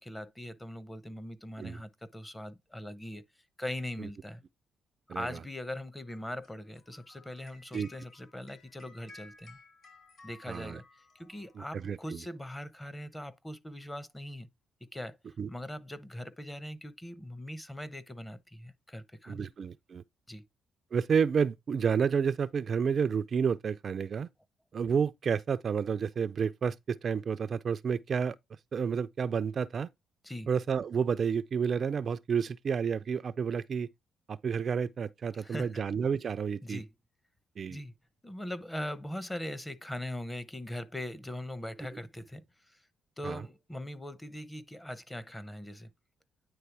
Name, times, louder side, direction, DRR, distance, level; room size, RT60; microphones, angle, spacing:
voice 1, 0.0-3.2 3.6-4.4 5.1-9.6 10.2-10.8 11.1-14.5 14.9-15.2 15.5-19.5 20.3-20.4 30.2-30.5 35.3-35.8 36.6-36.9 37.7-37.9 38.2-42.8 43.2-45.9, left 1 dB, 10° left, 0.8 m, -41 dB
sound 1, 6.1-11.9, left 3 dB, 50° left, 4.3 m, -57 dB
voice 2, 10.5-10.8 11.6-12.2 15.4-15.5 19.3-20.0 20.9-24.3 24.7-28.4 28.7-29.9 30.5-33.9 34.3-36.8 37.6-37.8 43.2-43.4, right 6 dB, 50° right, 0.4 m, -30 dB
9.5 x 3.2 x 4.6 m
cardioid pair, 90°, 0 cm